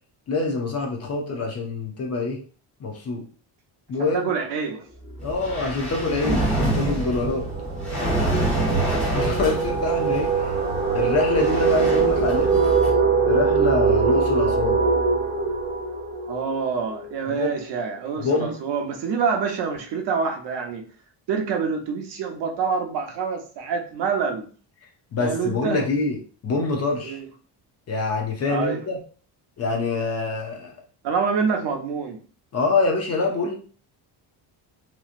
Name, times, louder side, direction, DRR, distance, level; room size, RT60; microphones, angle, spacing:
voice 1, 0.3-2.4 2.8-3.2 3.9-4.3 5.2-7.5 9.1-10.6 10.9-12.6 13.3-14.8 17.3-17.5 18.2-18.6 25.1-26.2 26.4-27.2 27.9-29.0 29.6-30.7 32.5-33.6, left 3 dB, 35° left, 1 dB, 0.6 m, -25 dB
voice 2, 4.0-4.9 8.5-9.0 16.3-20.8 21.3-24.5 25.2-25.8 27.0-27.2 28.5-28.8 31.0-32.2, right 5 dB, 65° right, 3 dB, 0.8 m, -26 dB
sound 1, 5.1-5.3 5.6-17.2, right 5 dB, 20° right, 0.4 m, -23 dB
sound 2, 5.2-12.9, right 1 dB, 5° left, 0.8 m, -27 dB
3.0 x 2.6 x 2.4 m, 0.40 s
cardioid pair, 170°, 44 cm